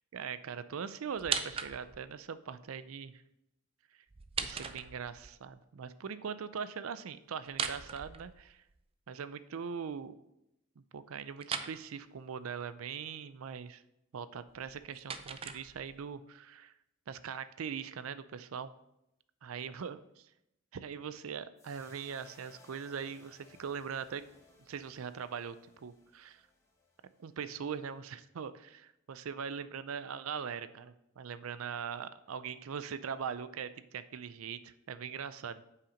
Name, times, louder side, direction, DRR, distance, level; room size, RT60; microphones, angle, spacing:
voice 1, 0.1-3.2 4.4-8.6 9.1-10.1 10.8-13.8 14.1-16.7 17.1-18.7 19.4-20.3 20.7-24.3 24.7-25.6 25.8-26.4 27.2-35.6, right 6 dB, 90° right, 14 dB, 0.5 m, -41 dB
sound 1, 1.2-2.1 4.1-5.3 7.5-8.8 11.4-11.8 14.5-16.1, right 6 dB, 25° right, 0.4 m, -39 dB
sound 2, 21.6-28.0, left 3 dB, 15° left, 1.3 m, -62 dB
7.9 x 5.8 x 5.0 m, 0.84 s
head